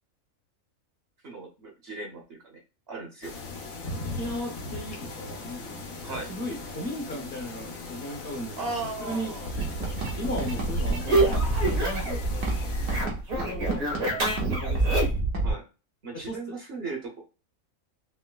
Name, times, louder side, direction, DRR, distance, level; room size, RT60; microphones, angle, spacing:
voice 1, 1.2-2.6 2.9-3.3 6.0-6.3 8.6-9.5 13.7-14.0 15.4-15.7 16.0-17.2, right 3 dB, 50° right, 0 dB, 1.0 m, -37 dB
sound 1, 3.2-13.1, left 3 dB, 75° left, 1.2 m, -39 dB
voice 2, 3.9-5.9 6.3-8.6 9.0-9.3 10.2-12.5 13.3-15.0 16.1-16.4, equal, 50° left, 0 dB, 1.0 m, -36 dB
sound 2, 9.5-15.5, right 2 dB, 70° right, 1.4 m, -29 dB
sound 3, 9.5-12.2 12.5-15.3, right 2 dB, 85° right, 1.4 m, -28 dB
4.5 x 2.0 x 2.2 m, 0.32 s
omnidirectional pair, 1.5 m